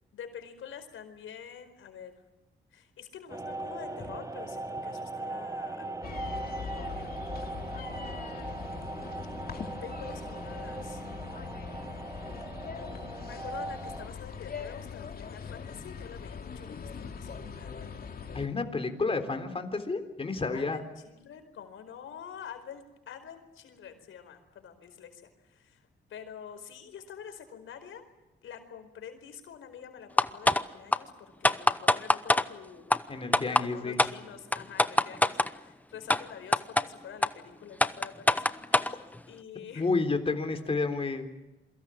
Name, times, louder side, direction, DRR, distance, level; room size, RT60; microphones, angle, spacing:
voice 1, 0.1-2.1 2.7-6.0 6.8-7.6 7.9-8.6 9.8-11.0 12.9-17.9 20.5-25.8 26.1-28.0 28.4-32.9 33.2-38.4 39.3-39.9, left 8 dB, 85° left, 8 dB, 4.7 m, -47 dB
sound 1, 3.3-14.1, right 2 dB, 15° right, 1.3 m, -39 dB
sound 2, 6.0-18.5, left 5 dB, 50° left, 2.7 m, -41 dB
voice 2, 18.3-20.8 33.1-34.0 39.8-41.3, left 3 dB, 30° left, 6 dB, 3.7 m, -30 dB
sound 3, 30.2-30.6 30.9-31.0 31.4-32.4 32.9-33.0 33.3-33.6 34.0-34.1 34.5-35.5 36.1-36.2 36.5-36.8 37.2-37.3 37.8-38.9, left 1 dB, 5° left, 0.8 m, -23 dB
28.5 x 23.5 x 7.3 m, 1.0 s
cardioid pair, 105°, 20 cm